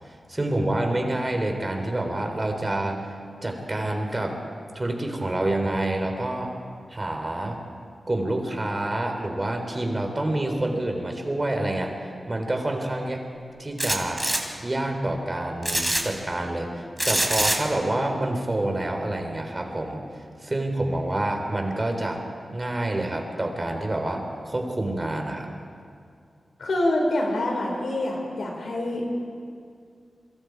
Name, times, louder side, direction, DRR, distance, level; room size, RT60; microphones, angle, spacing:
voice 1, 0.3-3.1 3.4-4.4 4.7-6.6 6.9-7.6 8.1-13.2 13.6-14.3 14.6-20.0 20.4-22.2 22.5-25.5, right 1 dB, 30° right, 3 dB, 3.7 m, -27 dB
sound 1, 13.8-14.4 15.6-16.0 17.0-17.6, right 1 dB, 15° right, 3.2 m, -24 dB
voice 2, 26.6-29.1, left 1 dB, 85° left, 0 dB, 5.0 m, -26 dB
28.0 x 22.5 x 4.7 m, 2.3 s
cardioid pair, 60°, 0 cm